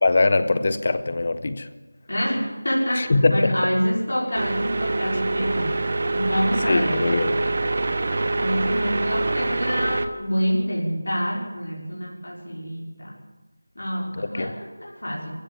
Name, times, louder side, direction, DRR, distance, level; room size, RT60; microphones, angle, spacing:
voice 1, 0.0-1.7 3.0-3.6 6.7-7.4 14.4-14.5, left 3 dB, 40° left, 12 dB, 1.4 m, -21 dB
voice 2, 2.1-7.1 8.4-13.2 13.8-15.3, equal, 75° left, -4 dB, 5.6 m, -27 dB
sound 1, 4.4-10.1, right 2 dB, 40° right, 1.4 m, -25 dB
25.0 x 16.0 x 7.4 m, 1.2 s
figure-of-eight pair, 170°, 0 cm